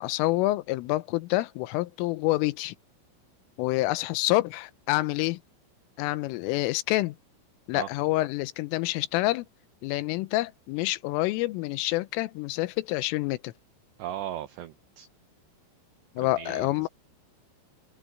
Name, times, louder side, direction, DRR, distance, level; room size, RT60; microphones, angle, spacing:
voice 1, 0.0-2.8 3.6-5.4 6.0-7.2 7.7-9.5 9.8-13.5 16.2-16.9, left 18 dB, 90° left, 3.4 m, -27 dB
voice 2, 14.0-15.1 16.2-16.9, right 12 dB, 70° right, 2.9 m, -37 dB
open air
omnidirectional pair, 5.7 m